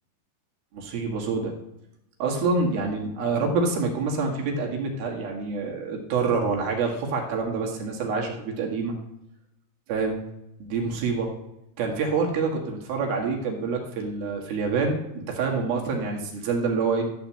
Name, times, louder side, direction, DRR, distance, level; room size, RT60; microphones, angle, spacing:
voice 1, 0.7-1.5 2.2-9.0 9.9-10.2 10.6-11.3 11.8-17.0, right 4 dB, 70° right, 0 dB, 3.6 m, -26 dB
13.5 x 4.5 x 7.4 m, 0.87 s
omnidirectional pair, 4.6 m